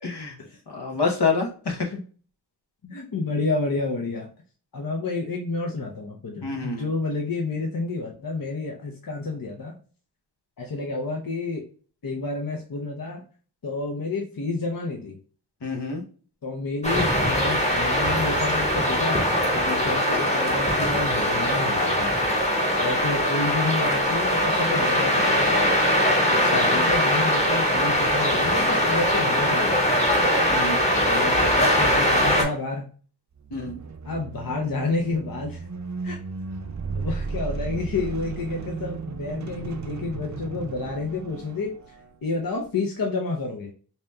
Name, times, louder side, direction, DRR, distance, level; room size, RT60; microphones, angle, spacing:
voice 1, 0.0-0.3 0.7-1.9 6.4-6.9 15.6-16.0 26.3-26.7 30.5-30.8 33.5-33.8, left 4 dB, 75° left, 1 dB, 1.0 m, -27 dB
voice 2, 2.8-4.3 4.7-9.8 10.6-11.6 12.0-13.2 13.6-15.2 16.4-19.3 19.5-22.1 22.8-25.6 26.5-29.9 30.9-32.9 34.0-35.7 36.0-36.2 36.9-41.7 42.2-43.7, left 3 dB, 55° left, 1 dB, 0.7 m, -30 dB
sound 1, 16.8-32.4, equal, 15° left, 1.3 m, -21 dB
sound 2, 33.3-42.1, right 4 dB, 45° right, 0.5 m, -35 dB
4.8 x 2.8 x 2.2 m, 0.41 s
wide cardioid pair, 60°, 41 cm